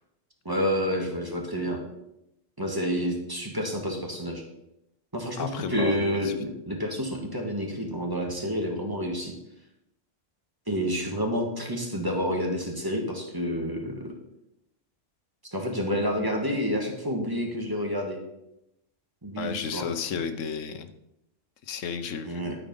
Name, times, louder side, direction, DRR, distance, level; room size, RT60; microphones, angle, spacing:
voice 1, 0.4-1.8 2.6-4.4 5.1-9.3 10.7-14.1 15.5-18.2 19.2-19.8 22.2-22.6, equal, 20° right, 1 dB, 1.5 m, -29 dB
voice 2, 5.4-6.3 19.4-20.9 21.6-22.4, left 6 dB, 85° left, 9 dB, 1.2 m, -33 dB
12.0 x 4.9 x 5.3 m, 0.85 s
omnidirectional pair, 1.3 m